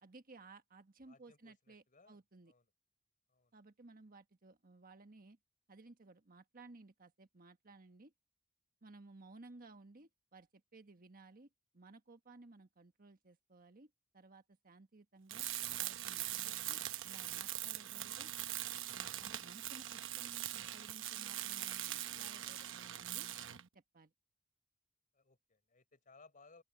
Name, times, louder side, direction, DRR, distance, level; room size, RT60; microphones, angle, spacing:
voice 1, 0.0-2.5 3.5-5.4 5.7-8.1 8.8-11.5 11.7-15.5 15.8-18.3 18.9-23.3 23.7-24.1, right 3 dB, 45° right, 1.4 m, -58 dB
voice 2, 1.1-2.2 2.5-2.6 3.3-3.6 25.1-26.6, left 4 dB, 40° left, 4.3 m, -64 dB
Tools, 15.3-23.7, right 13 dB, 65° right, 1.0 m, -42 dB
open air
head